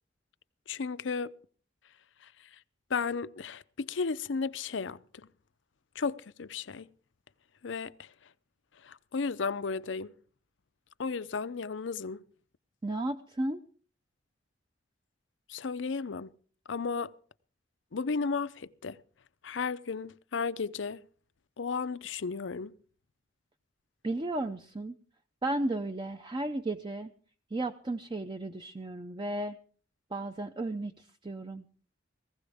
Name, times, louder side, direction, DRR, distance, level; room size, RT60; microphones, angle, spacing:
voice 1, 0.7-1.3 2.9-5.0 6.0-6.9 7.6-7.9 8.9-10.1 11.0-12.2 15.5-16.3 16.7-17.1 17.9-19.0 19.4-21.0 21.6-22.7, left 5 dB, 70° left, 0.6 m, -34 dB
voice 2, 12.8-13.6 24.0-24.9 25.4-27.1 27.5-29.6 30.1-31.7, right 2 dB, 25° right, 0.6 m, -34 dB
19.5 x 15.5 x 3.5 m
head